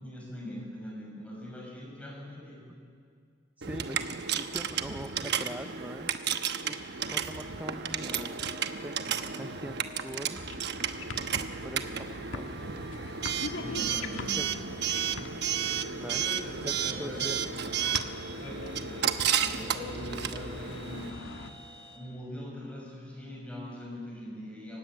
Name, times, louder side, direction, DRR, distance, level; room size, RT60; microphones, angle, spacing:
voice 1, 0.0-2.8 13.6-14.4 15.9-16.5 16.8-17.3 18.4-19.1 19.4-21.3 21.9-24.8, left 1 dB, 5° left, -3 dB, 6.8 m, -42 dB
voice 2, 3.6-6.1 6.6-10.6 11.6-12.8 14.4-14.5 16.0-16.2 16.6-17.4, right 1 dB, 10° right, 8 dB, 0.5 m, -43 dB
Coin (dropping) / Alarm, 3.6-21.1, right 8 dB, 60° right, 1.0 m, -33 dB
sound 1, 7.1-22.0, left 2 dB, 30° left, 3.0 m, -54 dB
sound 2, 10.3-21.5, left 2 dB, 85° left, 1.6 m, -43 dB
26.0 x 16.0 x 9.7 m, 2.2 s
head